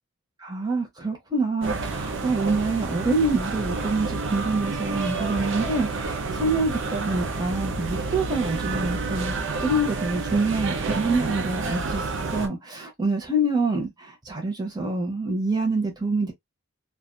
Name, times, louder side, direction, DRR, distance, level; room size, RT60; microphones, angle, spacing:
voice 1, 0.4-16.3, right 2 dB, 20° right, 0.7 m, -26 dB
sound 1, 1.6-12.5, right 3 dB, 60° right, 0.5 m, -29 dB
2.4 x 2.3 x 2.5 m
head